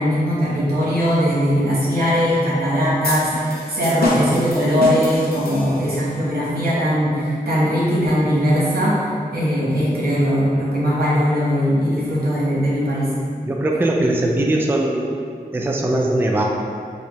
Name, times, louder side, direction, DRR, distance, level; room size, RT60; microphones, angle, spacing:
voice 1, 0.0-9.0 9.3-13.1, equal, 85° right, -8 dB, 1.0 m, -19 dB
sound 1, 3.0-6.1, left 1 dB, 90° left, 0.5 m, -26 dB
voice 2, 13.4-15.1 15.5-16.4, right 1 dB, 15° right, 0 dB, 0.3 m, -20 dB
4.3 x 2.1 x 2.9 m, 2.3 s
wide cardioid pair, 60°, 15 cm